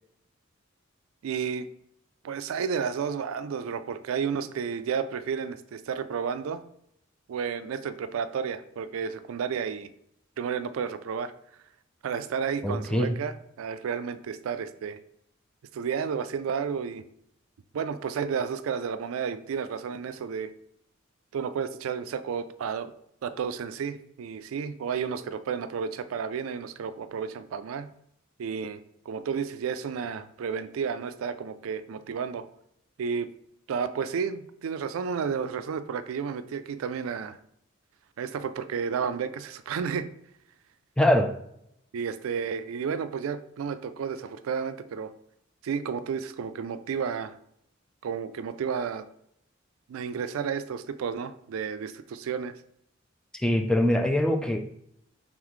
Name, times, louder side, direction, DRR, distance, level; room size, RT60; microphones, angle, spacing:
voice 1, 1.2-1.7 2.2-6.6 7.3-9.9 10.4-11.3 12.0-15.0 15.7-17.0 17.7-20.5 21.3-22.9 23.2-27.9 28.4-28.8 29.1-32.5 33.0-33.3 33.7-37.4 38.2-40.1 41.9-45.1 45.6-47.3 48.0-49.1 49.9-52.6, right 6 dB, 90° right, 12 dB, 0.3 m, -32 dB
voice 2, 12.6-13.1 41.0-41.3 53.3-54.6, left 1 dB, 5° left, 5 dB, 0.3 m, -23 dB
3.9 x 3.5 x 3.1 m, 0.74 s
head